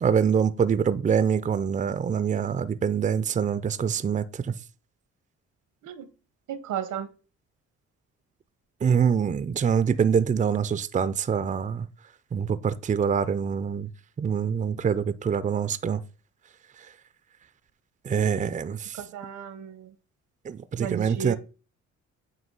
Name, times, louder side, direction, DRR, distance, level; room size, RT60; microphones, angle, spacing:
voice 1, 0.0-4.5 8.8-11.9 12.3-13.9 14.2-16.0 18.0-19.0 20.4-21.4, right 7 dB, 25° right, 0.5 m, -25 dB
voice 2, 6.5-7.1 19.0-19.9 20.8-21.4, right 9 dB, 80° right, 1.0 m, -34 dB
8.1 x 2.7 x 5.5 m
cardioid pair, 90°, 30 cm